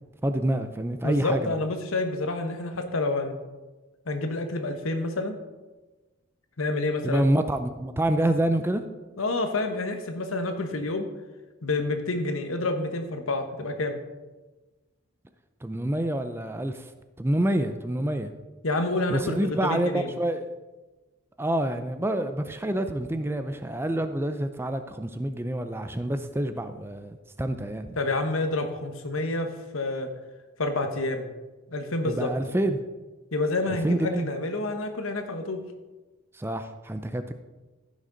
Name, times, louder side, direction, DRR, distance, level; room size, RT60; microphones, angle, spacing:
voice 1, 0.2-1.6 7.0-8.8 15.6-16.9 17.2-18.3 19.1-20.4 21.4-28.0 32.0-32.8 33.8-34.3 36.3-37.3, right 1 dB, 10° right, 9 dB, 0.4 m, -27 dB
voice 2, 1.0-3.4 4.1-5.4 6.6-7.3 9.2-11.1 11.6-14.0 18.6-20.1 28.0-30.1 30.6-31.2 31.7-32.3 33.3-35.6, left 2 dB, 80° left, 6 dB, 1.2 m, -28 dB
15.0 x 6.3 x 3.9 m, 1.2 s
head